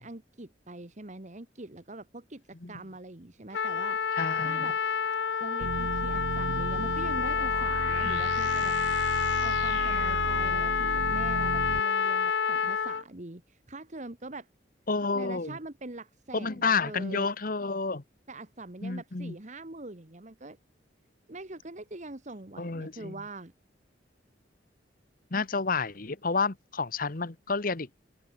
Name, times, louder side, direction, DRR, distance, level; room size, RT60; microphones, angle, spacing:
voice 1, 0.0-4.0 4.4-4.8 5.4-8.7 9.4-14.5 15.1-17.3 18.3-20.6 21.3-23.5, right 2 dB, 40° right, 1.6 m, -43 dB
Trumpet, 3.5-13.0, left 6 dB, 70° left, 0.7 m, -28 dB
voice 2, 4.1-4.7 8.0-8.2 14.9-15.6 16.3-18.0 18.8-19.3 22.6-23.2 25.3-27.9, left 4 dB, 50° left, 1.2 m, -30 dB
sound 1, 5.6-11.8, right 5 dB, 75° right, 0.4 m, -35 dB
open air
head